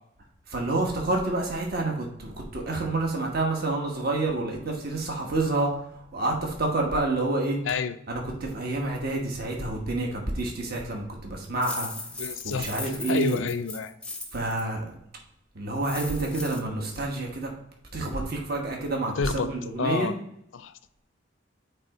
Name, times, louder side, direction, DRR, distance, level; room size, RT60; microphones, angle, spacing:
voice 1, 0.5-7.6 8.1-11.9 12.4-13.4 14.3-15.0 15.5-17.5 17.9-20.1, right 2 dB, 55° right, 1.2 m, -28 dB
voice 2, 7.6-8.0 12.2-12.7 13.1-13.9 19.2-19.5 19.8-20.2 20.5-20.7, left 5 dB, 85° left, 0.4 m, -28 dB
sound 1, 11.6-14.6 15.8-16.6, left 3 dB, 5° left, 0.6 m, -38 dB
8.4 x 3.4 x 4.0 m
head